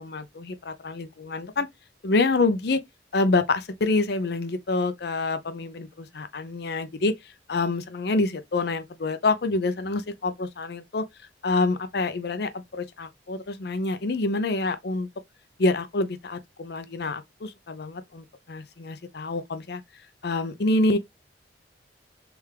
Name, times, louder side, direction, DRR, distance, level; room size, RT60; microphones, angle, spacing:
voice 1, 0.0-1.7 2.0-2.8 3.1-7.1 7.5-11.1 11.4-15.1 15.6-19.8 20.2-21.0, left 3 dB, 60° left, 0.6 m, -27 dB
3.5 x 3.4 x 3.2 m
head